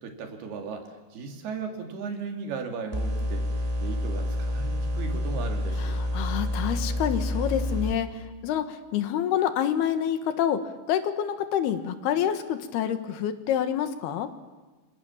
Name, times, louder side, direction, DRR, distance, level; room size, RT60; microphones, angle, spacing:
voice 1, 0.0-6.0, right 5 dB, 75° right, 4 dB, 4.7 m, -36 dB
sound 1, 2.9-7.9, left 1 dB, 25° right, 0.8 m, -28 dB
voice 2, 5.8-10.6 10.9-14.3, left 10 dB, 80° left, 10 dB, 3.4 m, -27 dB
29.0 x 25.5 x 7.3 m, 1.3 s
omnidirectional pair, 4.5 m